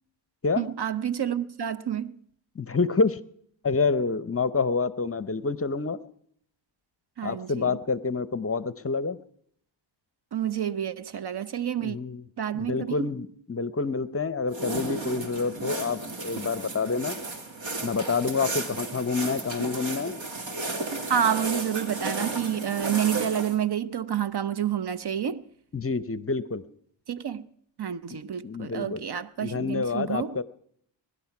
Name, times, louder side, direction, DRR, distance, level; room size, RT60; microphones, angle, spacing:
voice 1, 0.6-2.1 7.2-7.8 10.3-12.0 12.4-13.1 21.1-25.5 27.1-27.5 27.8-30.4, right 9 dB, 55° right, 0.8 m, -29 dB
voice 2, 2.6-3.2 3.6-6.0 7.2-9.2 11.8-12.2 12.5-17.2 17.8-20.1 25.7-26.6 28.1-28.2 28.4-29.0 29.4-30.4, left 4 dB, 30° left, 0.7 m, -28 dB
sound 1, 14.5-23.6, right 2 dB, 70° right, 2.2 m, -33 dB
21.0 x 11.5 x 5.9 m
cardioid pair, 75°, 47 cm